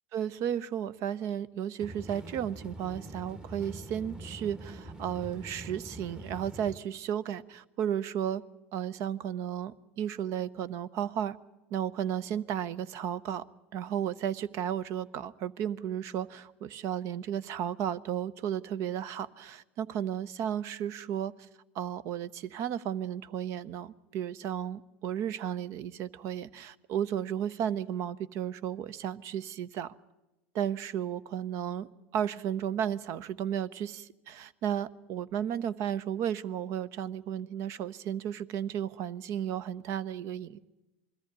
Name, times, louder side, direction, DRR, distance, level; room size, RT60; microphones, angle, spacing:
voice 1, 0.1-8.4 8.7-11.4 11.7-13.4 13.7-21.3 21.7-29.9 30.5-40.6, right 9 dB, 50° right, 18 dB, 0.7 m, -34 dB
sound 1, 1.8-6.8, right 1 dB, 10° right, 1.3 m, -44 dB
21.0 x 14.0 x 9.4 m, 1.0 s
hypercardioid pair, 100°, 6 cm